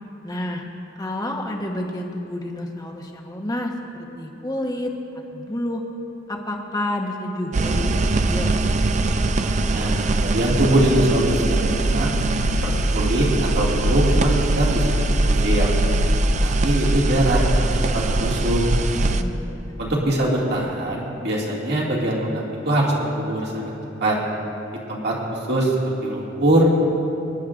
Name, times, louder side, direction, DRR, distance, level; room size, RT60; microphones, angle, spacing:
voice 1, 0.2-0.6 1.0-4.9 5.3-5.8 6.3-8.5 19.1-19.9, left 1 dB, 20° left, 1 dB, 1.1 m, -29 dB
sound 1, 7.5-19.2, right 2 dB, 40° right, 0.5 m, -21 dB
voice 2, 9.7-12.1 12.6-13.3 13.5-15.7 16.4-18.6 19.8-23.7 24.0-24.2 24.9-26.7, right 1 dB, 60° right, -4 dB, 2.3 m, -22 dB
25.5 x 10.5 x 2.6 m, 2.9 s
head